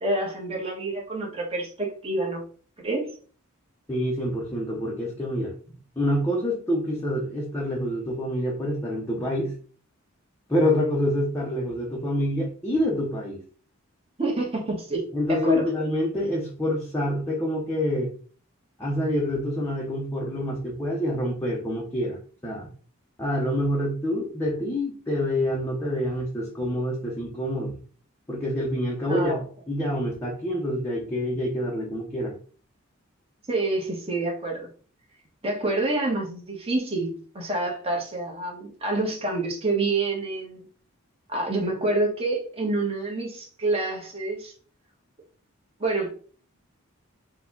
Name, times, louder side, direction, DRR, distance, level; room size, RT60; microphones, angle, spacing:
voice 1, 0.0-2.4 2.8-3.1 14.2-15.7 29.1-29.4 33.5-34.7 35.4-40.6 41.3-44.5 45.8-46.1, right 2 dB, 30° right, -1 dB, 1.3 m, -27 dB
voice 2, 3.9-5.5 6.0-9.5 10.5-13.4 15.1-18.1 18.8-22.7 23.2-27.8 28.3-29.4 29.7-32.4, left 1 dB, 10° left, -4 dB, 0.8 m, -27 dB
4.6 x 2.4 x 3.8 m, 0.42 s
head